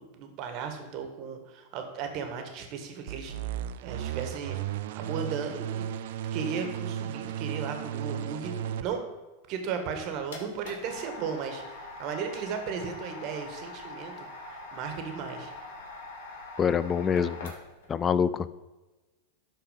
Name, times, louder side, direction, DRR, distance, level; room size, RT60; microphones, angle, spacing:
voice 1, 0.0-3.4 3.8-4.6 4.9-5.9 6.3-9.0 9.5-15.5, right 6 dB, 50° right, 6 dB, 1.7 m, -36 dB
sound 1, 3.1-8.9, right 10 dB, 70° right, 0.5 m, -34 dB
sound 2, 9.8-17.9, left 2 dB, 75° left, 2.6 m, -43 dB
voice 2, 16.6-17.5 17.9-18.6, left 7 dB, 25° left, 16 dB, 0.4 m, -26 dB
12.0 x 4.3 x 5.2 m, 1.2 s
hypercardioid pair, 125°, 0 cm